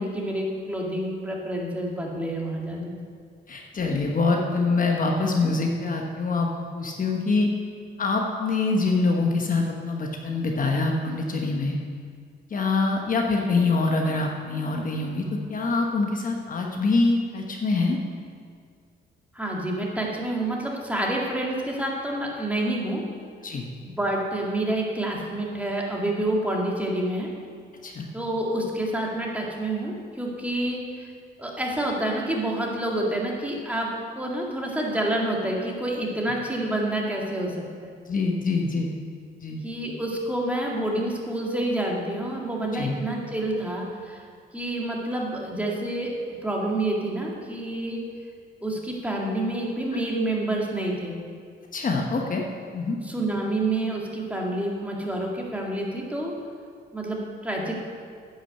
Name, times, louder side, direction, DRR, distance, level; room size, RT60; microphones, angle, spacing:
voice 1, 0.0-2.9 19.3-23.1 23.8-27.3 28.1-31.1 31.4-33.9 34.2-37.9 39.6-44.2 44.5-46.1 46.4-48.0 48.6-51.1 53.0-56.3 56.9-57.8, right 1 dB, 5° right, -2 dB, 2.0 m, -28 dB
voice 2, 3.5-7.5 8.0-11.8 12.5-18.0 23.4-23.7 27.8-28.1 38.1-38.9 39.4-39.6 42.7-43.0 49.9-50.0 51.7-52.4 52.7-53.0, left 3 dB, 45° left, 1 dB, 1.1 m, -25 dB
10.0 x 6.3 x 6.6 m, 2.1 s
cardioid pair, 90°, 20 cm